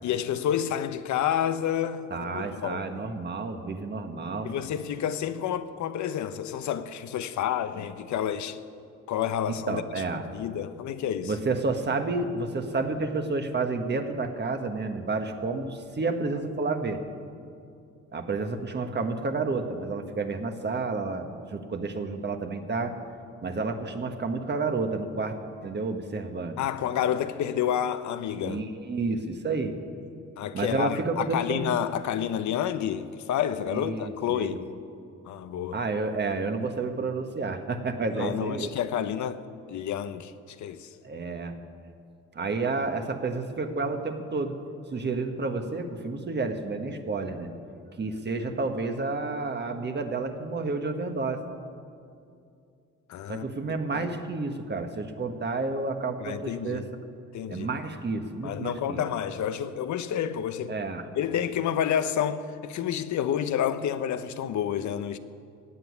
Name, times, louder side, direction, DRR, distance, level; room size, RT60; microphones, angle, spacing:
voice 1, 0.0-3.1 4.4-8.6 9.1-9.8 10.3-11.3 26.6-28.6 30.4-34.7 35.2-35.8 38.1-39.4 39.7-40.3 40.6-40.9 53.1-53.5 53.9-54.1 56.2-56.8 57.3-57.7 58.4-60.7 61.2-65.2, left 9 dB, 70° left, 0.8 m, -29 dB
voice 2, 2.1-4.6 9.7-10.2 11.2-17.0 18.1-22.9 23.4-25.4 25.6-26.6 28.4-29.8 30.5-31.8 33.7-34.6 35.7-38.7 41.0-41.6 42.3-44.5 44.9-47.5 48.0-51.4 53.3-56.8 57.5-59.0 60.7-61.1, right 3 dB, 35° right, 1.4 m, -30 dB
16.0 x 7.8 x 9.7 m
cardioid pair, 90°, 30 cm